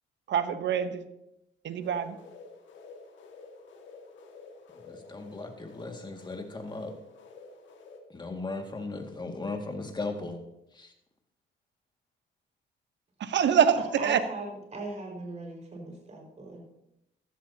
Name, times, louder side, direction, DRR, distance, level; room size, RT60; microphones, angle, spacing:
voice 1, 0.3-1.0 1.6-2.2 13.2-14.2, right 8 dB, 65° right, 10 dB, 1.1 m, -25 dB
sound 1, 1.8-8.0, left 4 dB, 70° left, 1.9 m, -50 dB
voice 2, 4.8-6.9 8.1-10.4 10.7-10.9, left 3 dB, 20° left, 3 dB, 2.1 m, -37 dB
voice 3, 13.7-16.6, right 2 dB, 35° right, 0 dB, 5.2 m, -39 dB
15.0 x 13.0 x 2.9 m, 0.85 s
cardioid pair, 90°, 20 cm